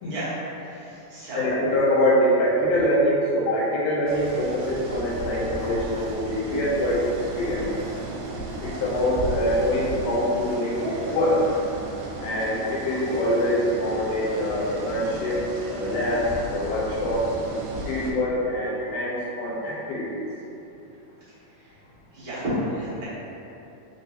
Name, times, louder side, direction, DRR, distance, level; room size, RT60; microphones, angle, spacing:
voice 1, 0.0-1.5 21.6-21.7 22.1-23.0, equal, 55° right, -12 dB, 1.5 m, -32 dB
voice 2, 1.3-7.1 7.4-7.7 8.6-11.4 12.2-15.4 15.7-17.3 17.9-20.2, left 1 dB, 75° left, -7 dB, 2.5 m, -24 dB
sound 1, 4.1-18.1, right 2 dB, 80° right, 2.2 m, -34 dB
5.0 x 2.9 x 2.7 m, 2.8 s
omnidirectional pair, 3.9 m